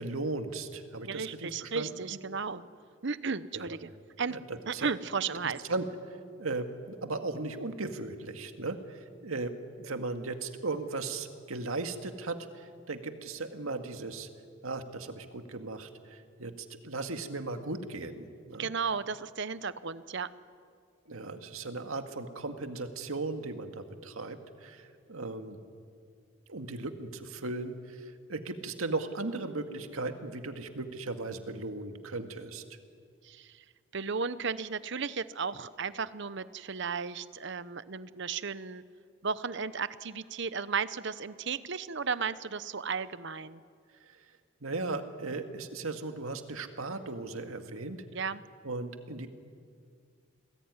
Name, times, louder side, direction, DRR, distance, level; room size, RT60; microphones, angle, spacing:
voice 1, 0.0-2.2 3.5-3.7 4.3-4.9 5.7-5.9 6.4-9.5 9.8-14.3 14.6-18.7 21.1-25.6 26.5-32.6 44.1-44.2 44.6-48.0 48.6-49.3, right 3 dB, 80° right, 6 dB, 2.0 m, -37 dB
voice 2, 1.1-2.7 3.0-3.9 4.2-4.4 4.7-5.6 18.6-20.3 33.2-33.6 33.9-38.8 39.2-43.6 48.1-48.4, right 5 dB, 55° right, 15 dB, 0.9 m, -34 dB
29.5 x 20.0 x 9.7 m, 2.3 s
head